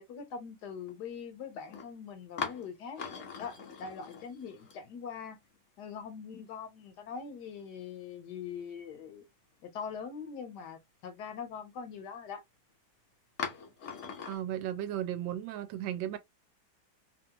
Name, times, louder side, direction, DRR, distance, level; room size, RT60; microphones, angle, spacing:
voice 1, 0.0-3.0 3.4-5.4 5.8-9.2 9.6-12.4, left 6 dB, 70° left, 1.2 m, -42 dB
sound 1, 0.9-1.0 1.7-1.9 2.4-5.3 5.5-5.6 7.1-7.8 8.3-8.4 8.9-9.0 13.4-14.4, left 6 dB, 55° left, 0.8 m, -40 dB
voice 2, 14.3-16.2, right 11 dB, 85° right, 1.3 m, -35 dB
2.9 x 2.6 x 2.7 m
omnidirectional pair, 2.0 m